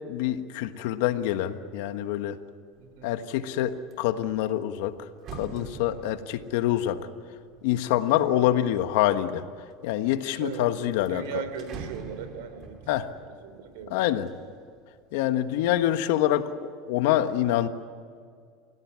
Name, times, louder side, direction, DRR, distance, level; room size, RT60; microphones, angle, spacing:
voice 1, 0.1-2.4 3.0-7.1 7.6-9.5 9.8-11.2 12.9-13.1 13.9-14.3 15.1-17.7, left 12 dB, 75° left, 9 dB, 1.4 m, -26 dB
sound 1, 2.8-3.2 3.6-8.9 9.5-10.2 10.5-10.6 10.9-14.8 15.2-15.8, right 6 dB, 45° right, 2.9 m, -46 dB
voice 2, 2.8-3.1 8.2-8.5 10.4-10.7 11.0-12.8 13.3-14.0, right 7 dB, 80° right, 10 dB, 3.4 m, -38 dB
29.5 x 16.5 x 9.7 m, 2.1 s
supercardioid pair, 130°, 0 cm